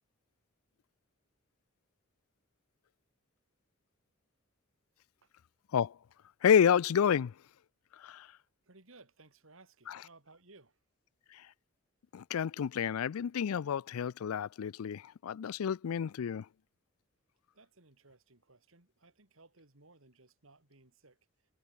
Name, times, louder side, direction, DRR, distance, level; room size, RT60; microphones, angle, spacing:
voice 1, 6.4-7.3 8.0-8.3 9.9-10.0 11.3-11.5 12.1-16.5, left 8 dB, 80° left, 0.4 m, -29 dB
voice 2, 8.6-10.8 17.5-21.2, right 3 dB, 65° right, 2.8 m, -60 dB
head